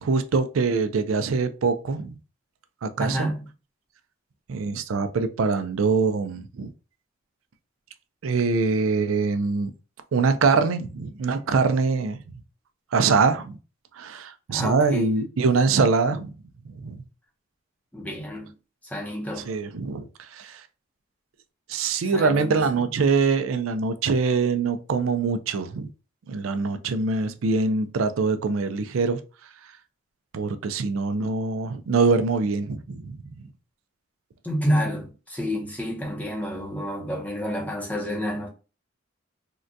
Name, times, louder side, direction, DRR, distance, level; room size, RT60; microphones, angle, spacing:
voice 1, 0.0-2.1 2.8-3.3 4.5-6.7 8.2-9.7 10.1-12.2 12.9-13.6 14.0-16.4 16.8-17.0 19.5-20.1 20.3-20.6 21.7-25.9 26.3-29.2 30.3-33.2, right 4 dB, 85° right, 0.4 m, -23 dB
voice 2, 3.0-3.5 14.5-15.1 17.9-18.5 18.8-19.5 22.0-22.7 34.4-38.5, equal, 10° left, 0.6 m, -29 dB
3.6 x 2.2 x 2.6 m
head